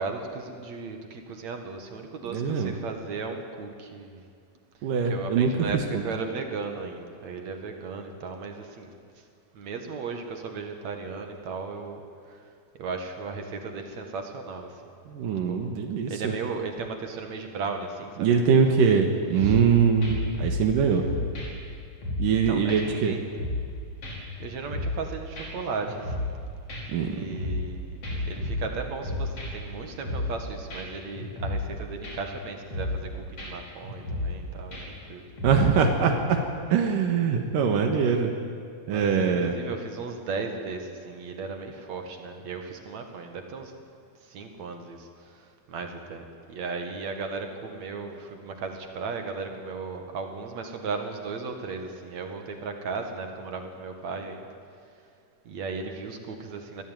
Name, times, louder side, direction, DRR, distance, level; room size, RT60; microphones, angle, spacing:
voice 1, 0.0-4.2 5.0-9.2 9.5-12.5 12.8-14.8 15.2-15.6 16.1-18.7 19.0-19.1 19.4-19.6 22.3-23.2 24.4-26.3 27.0-35.2 38.9-43.7 44.2-54.5 55.4-56.8, right 4 dB, 60° right, 5 dB, 3.0 m, -36 dB
voice 2, 2.3-2.7 4.8-5.5 5.9-6.0 15.1-16.1 18.2-21.0 22.2-23.1 26.9-27.1 35.4-36.4 36.7-38.3 38.9-39.5, right 6 dB, 90° right, 4 dB, 3.1 m, -22 dB
sound 1, 19.3-19.7 20.0-20.7 21.0-22.4 22.7-22.8 23.1-23.7 24.0-25.1 25.4-25.5 25.8-26.4 26.7-27.7 28.0-29.7 30.0-30.4 30.7-30.8 31.2-31.7 32.0-32.4 32.7-33.1 33.4-33.5 33.8-34.4 34.7-35.0 35.4-35.5, left 2 dB, 45° left, 6.2 m, -32 dB
25.0 x 17.5 x 9.3 m, 2.2 s
omnidirectional pair, 3.7 m